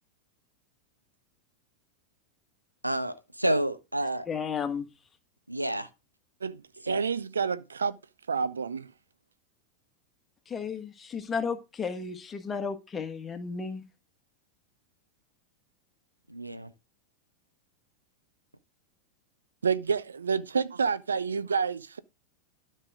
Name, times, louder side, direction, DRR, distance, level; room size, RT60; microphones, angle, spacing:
voice 1, 2.8-4.3 5.5-5.9 6.8-7.0 16.3-16.7, right 1 dB, 85° right, 1.0 m, -29 dB
voice 2, 4.3-4.9 10.5-13.8, left 5 dB, 20° left, 1.5 m, -33 dB
voice 3, 6.9-8.0 8.3-8.9 19.6-22.0, right 5 dB, 70° right, 0.5 m, -28 dB
12.5 x 5.6 x 3.6 m
figure-of-eight pair, 90°, 0 cm